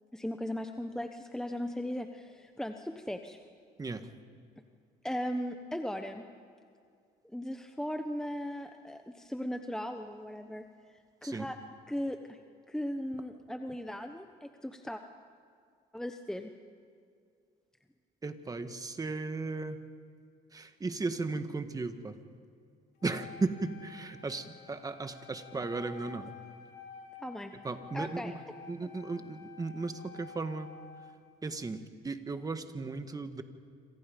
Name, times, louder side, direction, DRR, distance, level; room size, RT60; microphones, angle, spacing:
voice 1, 0.1-3.4 5.0-6.2 7.3-10.6 11.2-11.6 11.9-12.4 12.7-15.0 15.9-16.5 27.2-27.5 27.9-28.3 28.8-28.9, equal, 5° left, 6 dB, 1.1 m, -37 dB
voice 2, 18.2-19.8 20.5-22.1 23.0-26.3 27.6-28.2 28.7-30.7 31.4-33.4, right 3 dB, 20° right, 8 dB, 1.6 m, -36 dB
Wind instrument woodwind instrument, 23.0-31.3, left 7 dB, 70° left, 4.1 m, -51 dB
27.0 x 27.0 x 5.3 m, 2.3 s
cardioid pair, 110°, 17 cm